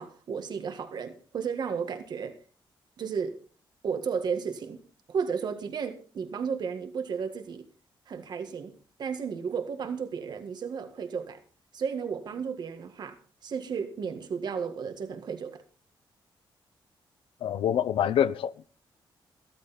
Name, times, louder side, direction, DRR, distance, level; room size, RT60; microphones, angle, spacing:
voice 1, 0.0-2.4 3.0-3.4 3.8-4.8 5.1-7.7 8.1-8.7 9.0-11.4 11.7-15.6, right 6 dB, 55° right, 1.8 m, -33 dB
voice 2, 17.4-18.7, left 9 dB, 90° left, 0.7 m, -26 dB
15.5 x 13.0 x 4.3 m
wide cardioid pair, 165°, 9 cm